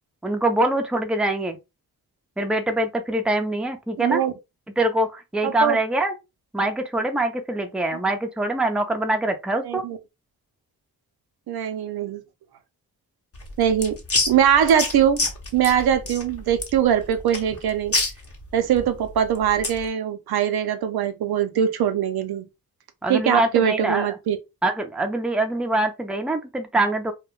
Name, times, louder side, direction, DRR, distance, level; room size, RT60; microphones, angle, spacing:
voice 1, 0.2-1.6 2.4-4.2 4.7-6.1 6.5-9.8 23.0-24.2 24.6-27.1, right 2 dB, 5° right, 0.4 m, -24 dB
voice 2, 4.0-4.3 5.4-5.8 9.7-10.0 11.5-12.2 13.6-13.9 14.3-15.2 15.5-18.0 18.5-22.5 23.1-24.4, right 9 dB, 80° right, 0.5 m, -22 dB
sound 1, 13.3-19.9, left 3 dB, 40° left, 0.8 m, -28 dB
2.3 x 2.1 x 3.0 m
cardioid pair, 80°, 37 cm